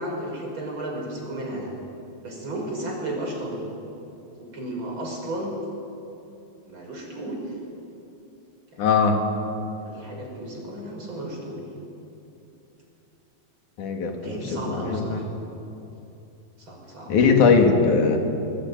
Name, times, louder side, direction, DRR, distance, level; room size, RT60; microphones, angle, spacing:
voice 1, 0.0-1.7 2.2-3.6 4.4-5.5 6.7-7.4 8.7-8.9 9.8-11.6 14.2-15.3 16.6-17.1, right 1 dB, 40° right, -1 dB, 6.5 m, -33 dB
voice 2, 8.8-9.2 13.8-15.2 17.1-18.2, left 5 dB, 85° left, 4 dB, 3.6 m, -20 dB
23.0 x 22.5 x 9.6 m, 2.9 s
omnidirectional pair, 3.4 m